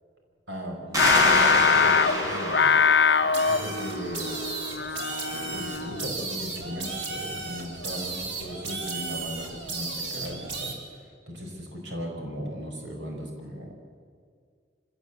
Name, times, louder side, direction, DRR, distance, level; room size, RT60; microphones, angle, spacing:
voice 1, 0.5-2.8 3.2-4.4 4.9-10.7 11.0-13.8, equal, 75° right, 1 dB, 4.9 m, -37 dB
sound 1, 0.9-4.3, equal, 20° right, 4.2 m, -27 dB
Singing, 1.0-6.2, left 6 dB, 70° left, 0.8 m, -23 dB
sound 2, 3.3-10.7, right 3 dB, 90° right, 3.9 m, -35 dB
25.0 x 17.0 x 8.3 m, 2.1 s
head